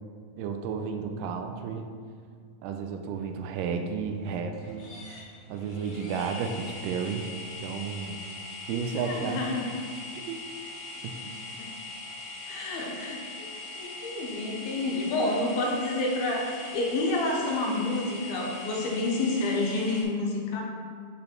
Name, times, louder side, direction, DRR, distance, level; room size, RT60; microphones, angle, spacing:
voice 1, 0.4-1.9 2.6-4.9 5.5-7.3 7.6-8.2 8.7-9.5 10.2-10.5 11.0-11.2, right 6 dB, 80° right, 6 dB, 2.0 m, -32 dB
sound 1, 4.5-20.0, left 2 dB, 60° left, 2.7 m, -41 dB
voice 2, 9.1-9.7 11.1-11.3 11.6-11.7 12.4-13.5 13.8-20.6, left 2 dB, 85° left, -1 dB, 2.9 m, -29 dB
8.7 x 4.2 x 4.4 m, 2.1 s
omnidirectional pair, 4.2 m